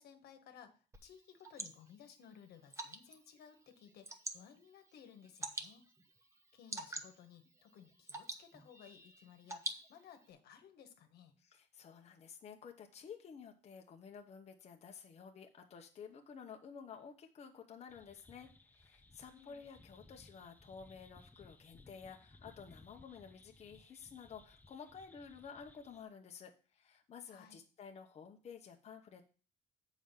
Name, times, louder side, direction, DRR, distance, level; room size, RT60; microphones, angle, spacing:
voice 1, 0.0-5.8 6.5-11.4 19.3-19.6 27.3-27.6, left 8 dB, 70° left, 7 dB, 1.3 m, -58 dB
Water / Drip, 0.9-10.3, right 2 dB, 15° right, 1.0 m, -48 dB
voice 2, 11.4-18.5 18.7-29.2, left 6 dB, 40° left, 3 dB, 1.0 m, -52 dB
sound 1, 17.9-26.0, left 2 dB, 10° left, 0.6 m, -62 dB
7.0 x 5.0 x 5.6 m, 0.38 s
cardioid pair, 110°, 17 cm